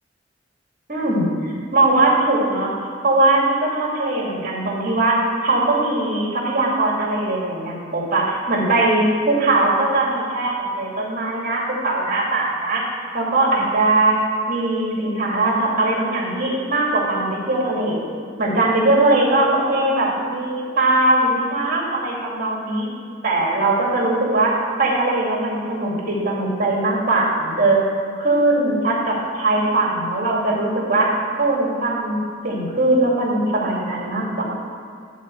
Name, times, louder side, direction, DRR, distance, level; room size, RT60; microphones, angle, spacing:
voice 1, 0.9-2.7 3.0-5.2 5.4-12.8 13.1-14.2 14.5-18.0 18.4-22.9 23.2-24.5 24.8-27.8 28.2-31.1 31.4-32.2 32.4-34.4, right 2 dB, 50° right, -3 dB, 2.5 m, -20 dB
11.5 x 4.3 x 7.8 m, 2.3 s
head